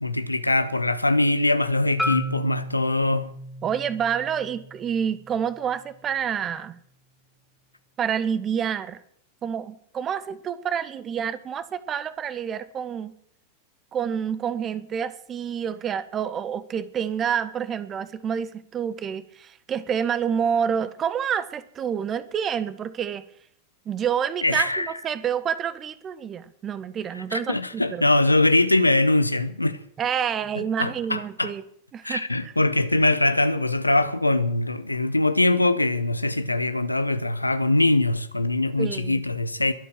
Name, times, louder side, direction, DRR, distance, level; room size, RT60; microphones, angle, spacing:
voice 1, 0.0-3.3 24.4-24.9 27.1-29.8 30.5-31.5 32.0-39.7, left 2 dB, 85° left, 1.1 m, -22 dB
Marimba xylophone, 2.0-6.2, left 1 dB, ahead, 2.4 m, -34 dB
voice 2, 3.6-6.8 8.0-9.0 9.4-13.1 13.9-23.3 23.8-28.1 30.0-31.6 31.9-32.5 38.8-39.2, right 8 dB, 25° right, 1.4 m, -28 dB
22.0 x 8.5 x 7.6 m
figure-of-eight pair, 90°, 0 cm